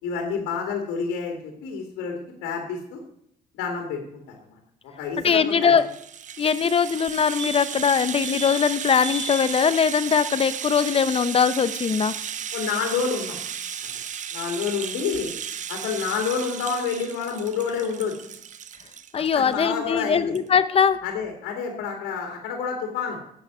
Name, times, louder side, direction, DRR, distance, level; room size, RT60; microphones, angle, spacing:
voice 1, 0.0-3.0 3.5-4.0 4.3-4.6 5.0-5.2 5.5-5.8 12.5-13.4 14.3-15.3 15.7-18.3 19.2-20.3 21.0-23.2, left 6 dB, 90° left, 3 dB, 2.6 m, -28 dB
voice 2, 5.2-5.9 6.4-12.2 19.1-21.0, left 6 dB, 35° left, 15 dB, 0.8 m, -21 dB
Rattle (instrument), 5.5-19.6 20.0-20.1 20.3-20.5, right 8 dB, 45° right, 1.0 m, -34 dB
sound 1, 7.1-7.2 7.4-7.9 8.2-8.6 9.0-9.5 11.8-11.9 12.1-12.2, left 1 dB, 30° right, 1.4 m, -35 dB
10.0 x 8.4 x 9.3 m, 0.71 s
cardioid pair, 110°, 17 cm